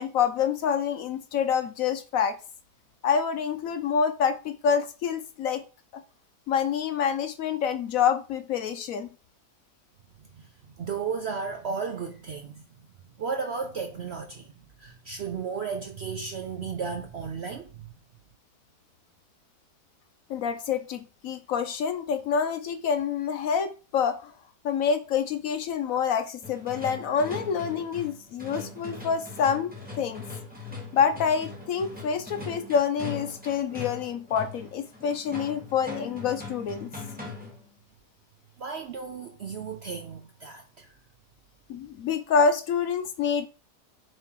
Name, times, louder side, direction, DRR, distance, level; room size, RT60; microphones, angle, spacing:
voice 1, 0.0-2.4 3.0-5.6 5.9-6.0 6.5-9.1 20.3-24.3 24.6-30.2 30.9-36.9 41.7-43.5, left 6 dB, 70° left, 0.9 m, -27 dB
voice 2, 10.2-12.9 13.2-17.9 38.6-40.9, right 5 dB, 60° right, 0.6 m, -34 dB
sound 1, 26.4-37.7, left 3 dB, 5° right, 1.7 m, -40 dB
7.1 x 3.3 x 4.6 m
omnidirectional pair, 1.8 m